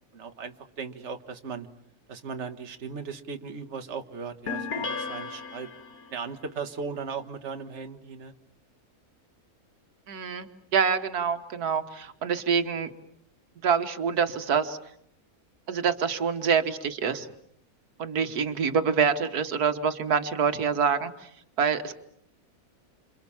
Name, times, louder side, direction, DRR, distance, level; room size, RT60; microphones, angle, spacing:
voice 1, 0.1-1.7 2.1-5.7 6.1-8.3 18.2-18.4, right 5 dB, 50° right, 7 dB, 1.7 m, -37 dB
sound 1, 4.5-6.2, left 5 dB, 80° left, 2.0 m, -34 dB
voice 2, 10.1-12.9 13.6-14.8 15.7-17.3 18.0-21.1 21.6-22.0, right 6 dB, 90° right, 8 dB, 1.9 m, -26 dB
28.5 x 27.0 x 7.2 m, 0.70 s
omnidirectional pair, 1.6 m